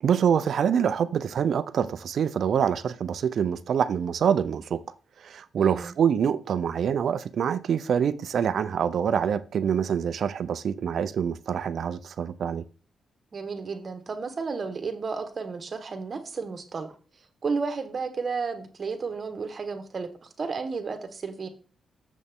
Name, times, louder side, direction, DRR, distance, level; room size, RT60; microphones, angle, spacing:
voice 1, 0.0-4.8 5.2-12.6, right 8 dB, 70° right, 0.5 m, -25 dB
voice 2, 5.6-5.9 13.3-16.9 17.4-21.5, right 4 dB, 45° right, 1.5 m, -32 dB
7.1 x 6.4 x 3.6 m
cardioid pair, 85°, 0 cm